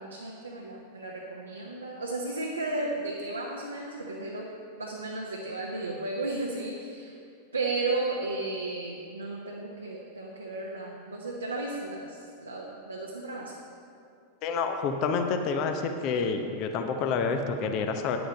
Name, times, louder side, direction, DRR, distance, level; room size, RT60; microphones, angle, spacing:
voice 1, 0.0-4.5 4.8-7.2 7.5-13.5, right 2 dB, 80° right, -2 dB, 1.0 m, -34 dB
voice 2, 14.4-18.2, left 5 dB, 40° left, 6 dB, 0.8 m, -28 dB
10.0 x 8.0 x 5.2 m, 2.4 s
figure-of-eight pair, 90°, 0 cm